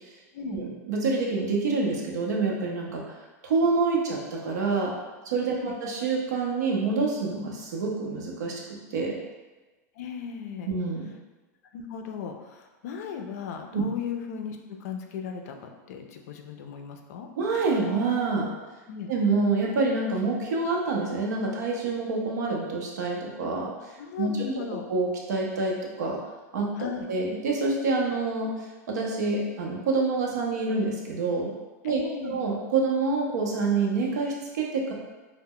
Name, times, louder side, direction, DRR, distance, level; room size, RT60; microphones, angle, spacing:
voice 1, 0.5-3.0 3.4-5.0 5.3-9.2 10.7-11.1 13.7-13.9 17.4-18.5 19.1-23.7 24.2-24.5 24.9-26.2 26.5-28.5 28.9-31.5 31.8-34.9, right 3 dB, 85° right, -1 dB, 0.6 m, -27 dB
voice 2, 10.0-10.7 11.7-17.3 18.9-19.1 24.0-24.9 26.8-27.1 31.8-32.4, left 6 dB, 70° left, 4 dB, 0.4 m, -36 dB
2.2 x 2.0 x 3.6 m, 1.2 s
supercardioid pair, 140°, 9 cm